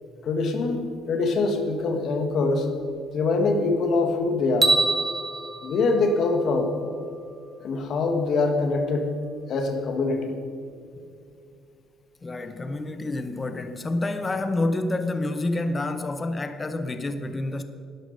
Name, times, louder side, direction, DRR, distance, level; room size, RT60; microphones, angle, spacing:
voice 1, 0.2-2.7 3.1-4.7 5.6-6.7 7.6-9.1 9.5-10.4, left 3 dB, 55° left, 1.6 m, -24 dB
sound 1, 4.6-6.9, right 3 dB, 20° right, 1.1 m, -26 dB
voice 2, 12.2-17.6, left 2 dB, 20° left, 0.7 m, -28 dB
12.0 x 10.5 x 5.2 m
cardioid pair, 110°, 0 cm